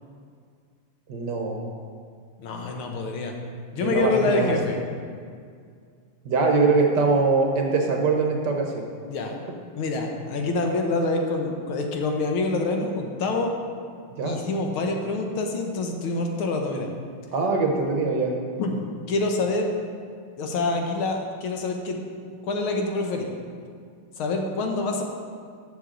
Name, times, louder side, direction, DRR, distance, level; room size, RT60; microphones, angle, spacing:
voice 1, 1.1-1.8 3.8-4.5 6.2-8.9 14.2-14.4 17.3-18.3, right 4 dB, 60° right, 2 dB, 1.4 m, -23 dB
voice 2, 2.4-3.3 3.7-4.8 9.0-9.3 9.8-13.5 14.2-16.9 18.6-19.7 20.4-22.0 22.4-23.3 24.2-25.0, left 3 dB, 75° left, 2 dB, 1.8 m, -26 dB
13.5 x 6.4 x 3.8 m, 2.2 s
omnidirectional pair, 2.3 m